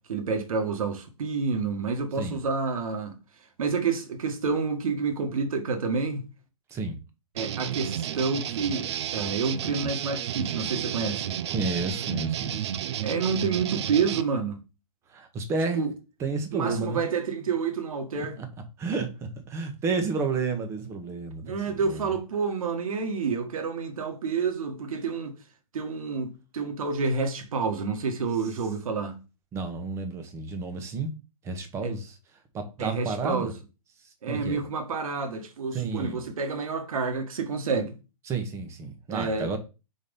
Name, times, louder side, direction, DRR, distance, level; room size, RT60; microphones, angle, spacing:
voice 1, 0.1-3.1 3.6-6.3 7.4-8.9 9.1-11.4 13.0-14.6 15.7-15.9 16.5-18.4 21.4-25.4 25.7-29.2 31.8-31.9 32.8-33.5 34.2-38.0 39.1-39.5, right 5 dB, 70° right, 1.6 m, -29 dB
sound 1, 7.4-14.2, right 10 dB, 50° right, 0.6 m, -32 dB
voice 2, 11.5-12.7 15.1-15.8 16.2-17.1 18.2-18.5 18.8-22.0 29.5-31.1 31.4-32.1 32.5-33.5 34.3-34.6 35.7-36.2 38.3-39.6, right 4 dB, 15° right, 1.0 m, -31 dB
4.7 x 4.3 x 5.3 m
hypercardioid pair, 155°, 18 cm